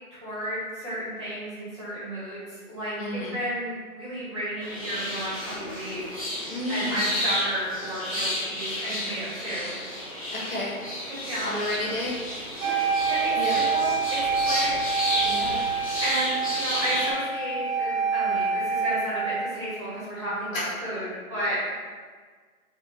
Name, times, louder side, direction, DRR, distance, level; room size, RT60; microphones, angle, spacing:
voice 1, 0.2-3.0 3.3-6.0 6.7-9.7 11.1-11.5 11.8-11.9 12.6-12.8 13.0-15.4 16.0-21.7, equal, 20° right, -11 dB, 1.2 m, -32 dB
voice 2, 3.0-3.3 6.4-7.1 10.3-10.8 11.4-12.3 13.4-13.6 15.2-15.6 20.5-20.7, left 1 dB, 65° left, -4 dB, 1.4 m, -31 dB
sound 1, 4.6-17.1, left 1 dB, 25° left, 0.6 m, -32 dB
Wind instrument woodwind instrument, 12.6-19.6, right 5 dB, 70° right, 1.2 m, -27 dB
4.5 x 2.4 x 3.8 m, 1.5 s
hypercardioid pair, 175°, 43 cm